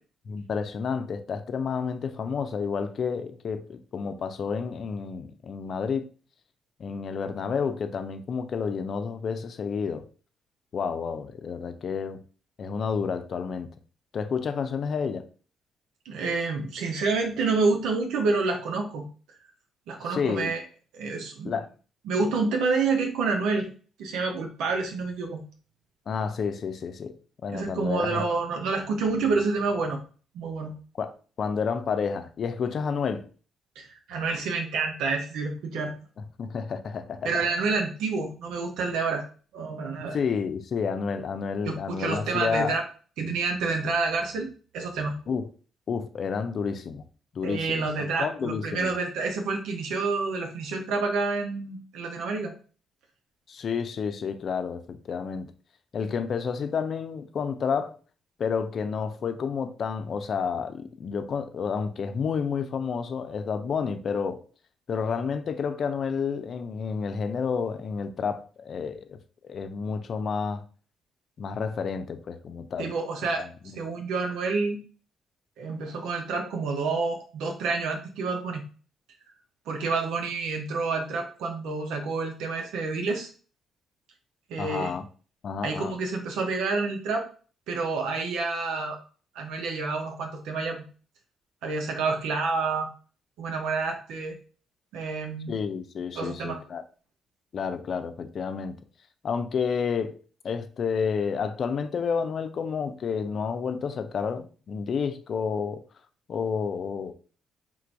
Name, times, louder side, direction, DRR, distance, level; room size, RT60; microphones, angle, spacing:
voice 1, 0.3-6.1 6.8-10.1 10.7-12.2 12.6-13.7 14.1-15.3 20.1-20.5 21.4-21.7 26.1-27.2 27.4-28.2 31.0-33.3 36.4-37.4 40.1-42.7 45.3-45.5 45.9-47.0 47.3-48.9 53.5-55.5 55.9-58.0 58.4-64.4 64.9-69.2 69.4-70.6 71.4-72.9 73.3-73.8 84.6-85.0 85.4-85.9 95.5-96.8 97.5-98.8 99.2-100.2 100.4-105.8 106.3-107.1, left 6 dB, 55° left, 0.6 m, -30 dB
voice 2, 16.0-19.0 19.9-20.6 20.9-21.5 22.1-23.7 24.0-25.4 27.5-30.0 30.3-30.7 33.8-35.9 37.2-39.2 39.5-40.2 41.6-42.8 43.2-44.5 44.7-45.1 47.4-52.5 72.8-74.8 75.6-78.6 79.7-83.3 84.5-84.9 85.6-87.3 87.7-89.0 89.3-90.8 91.6-92.9 93.4-94.4 94.9-95.6 96.1-96.6, right 4 dB, 90° right, 0.8 m, -28 dB
3.8 x 2.5 x 4.6 m
cardioid pair, 90°, 0 cm